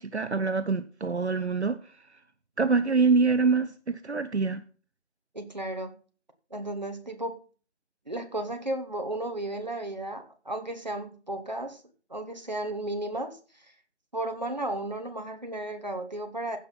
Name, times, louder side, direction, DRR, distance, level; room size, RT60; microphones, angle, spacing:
voice 1, 0.0-1.8 2.6-4.6, right 4 dB, 65° right, 0.7 m, -25 dB
voice 2, 5.3-6.0 6.5-7.4 8.1-11.8 12.1-13.4 14.1-16.6, right 1 dB, 40° right, 1.3 m, -34 dB
15.0 x 5.7 x 4.3 m
figure-of-eight pair, 175°, 35 cm